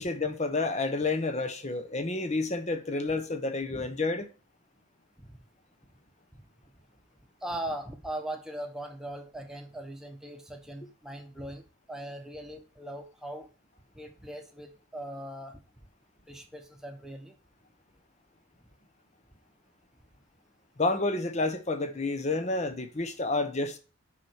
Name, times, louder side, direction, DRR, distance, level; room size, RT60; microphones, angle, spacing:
voice 1, 0.0-4.3 20.8-23.8, left 3 dB, 35° left, 1.1 m, -29 dB
voice 2, 7.4-11.6 11.9-13.5 13.9-15.6 16.3-17.3, right 1 dB, ahead, 1.3 m, -40 dB
7.4 x 5.9 x 6.5 m
head